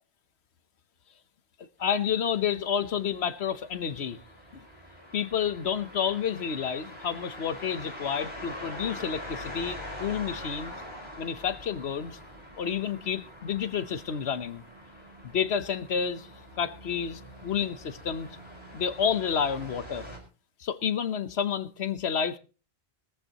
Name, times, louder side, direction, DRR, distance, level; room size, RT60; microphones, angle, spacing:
voice 1, 1.8-4.2 4.5-4.6 5.1-10.7 11.2-12.2 12.5-14.6 15.2-16.3 16.6-18.3 18.7-20.0 20.6-22.4, left 7 dB, 85° left, 1.3 m, -30 dB
sound 1, 1.8-20.2, equal, 25° left, 4.8 m, -44 dB
20.5 x 14.5 x 3.0 m
omnidirectional pair, 1.1 m